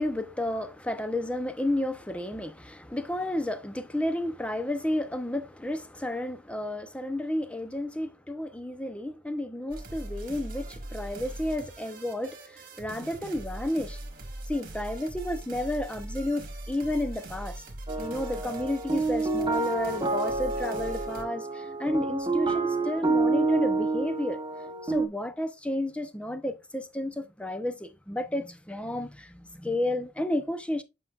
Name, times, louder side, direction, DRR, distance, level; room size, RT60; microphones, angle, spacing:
voice 1, 0.0-14.0 14.5-17.6 18.0-24.4 24.8-30.8, left 1 dB, 5° left, 0.7 m, -32 dB
sound 1, 9.7-21.2, right 1 dB, 50° right, 1.5 m, -41 dB
sound 2, 17.9-25.1, right 3 dB, 25° right, 0.8 m, -28 dB
7.9 x 5.4 x 2.4 m
head